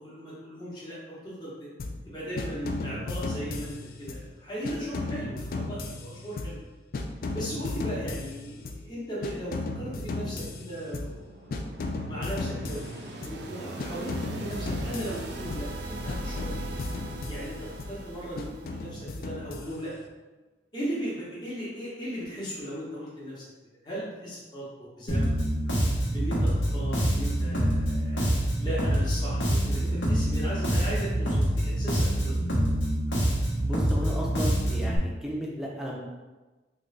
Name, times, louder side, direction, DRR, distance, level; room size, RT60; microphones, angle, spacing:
voice 1, 0.0-1.7 2.0-6.6 7.3-11.3 12.1-12.8 13.3-16.9 17.3-19.9 20.7-23.4 23.8-24.7 25.0-25.3 26.1-28.2 28.6-32.3, equal, 25° left, -9 dB, 0.9 m, -37 dB
sound 1, 1.8-2.1 2.4-4.3 4.6-6.7 6.9-8.9 9.2-11.2 11.5-13.5 13.8-15.8 16.1-18.0 18.4-20.0, left 2 dB, 50° left, 0.3 m, -35 dB
sound 2, 10.6-19.5, right 1 dB, 65° right, 0.4 m, -40 dB
Bass guitar, 25.1-35.0, right 1 dB, 85° left, 1.0 m, -26 dB
voice 2, 33.6-36.0, equal, 5° right, -3 dB, 0.5 m, -34 dB
3.7 x 2.3 x 3.2 m, 1.2 s
head